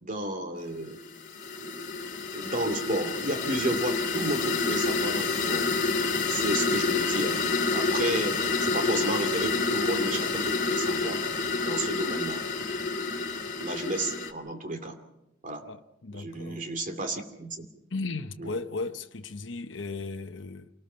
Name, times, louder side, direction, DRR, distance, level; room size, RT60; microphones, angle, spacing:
voice 1, 0.0-1.0 1.6-1.9 2.3-5.7 6.3-7.5 7.7-11.2 11.6-12.4 13.6-15.0 15.4-15.6 16.1-17.6 18.4-18.5, right 1 dB, 45° right, 2.6 m, -32 dB
sound 1, 0.9-14.3, left 4 dB, 40° left, 2.2 m, -28 dB
voice 2, 15.6-16.7 17.9-20.7, left 3 dB, 70° left, 1.0 m, -36 dB
27.5 x 19.0 x 5.6 m
head